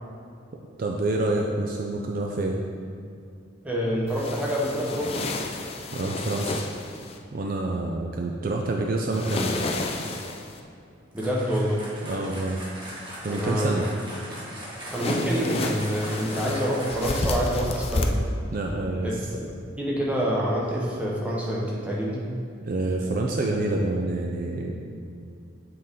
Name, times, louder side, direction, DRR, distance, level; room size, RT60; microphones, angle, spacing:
voice 1, 0.8-2.6 5.9-6.6 7.3-9.5 12.0-12.6 13.2-13.9 18.5-19.2 22.6-24.8, right 2 dB, 45° right, 0 dB, 0.4 m, -27 dB
voice 2, 3.6-5.2 11.1-11.8 13.3-13.8 14.9-18.2 19.0-19.1 19.8-22.3, equal, 5° right, -5 dB, 0.9 m, -26 dB
sound 1, 4.1-7.2 9.1-10.6 14.9-18.0, left 2 dB, 30° left, 0.3 m, -31 dB
sound 2, 11.1-17.5, right 1 dB, 25° right, 1.2 m, -40 dB
7.8 x 3.9 x 3.6 m, 2.5 s
head